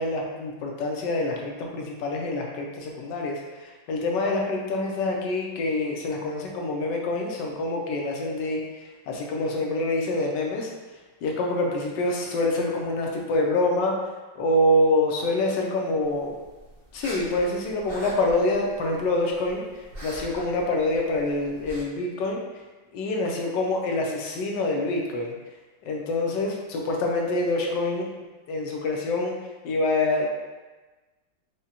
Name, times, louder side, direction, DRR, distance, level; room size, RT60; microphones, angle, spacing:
voice 1, 0.0-10.7 11.2-14.0 14.4-16.3 16.9-22.4 22.9-25.4 25.8-28.1 28.5-29.3 29.6-30.3, left 2 dB, 75° left, 0 dB, 1.2 m, -26 dB
sound 1, 16.0-21.8, right 1 dB, 55° right, 0.6 m, -43 dB
4.9 x 2.1 x 2.8 m, 1.2 s
omnidirectional pair, 2.0 m